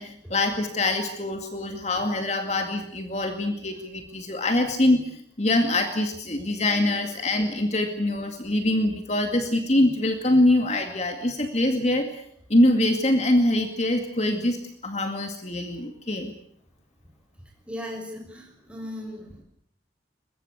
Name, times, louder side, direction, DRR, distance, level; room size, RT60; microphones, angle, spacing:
voice 1, 0.0-12.1 12.5-16.3, left 1 dB, 35° left, 5 dB, 2.2 m, -24 dB
voice 2, 17.7-19.4, left 1 dB, 5° right, 2 dB, 6.5 m, -37 dB
22.5 x 22.0 x 8.4 m, 0.68 s
head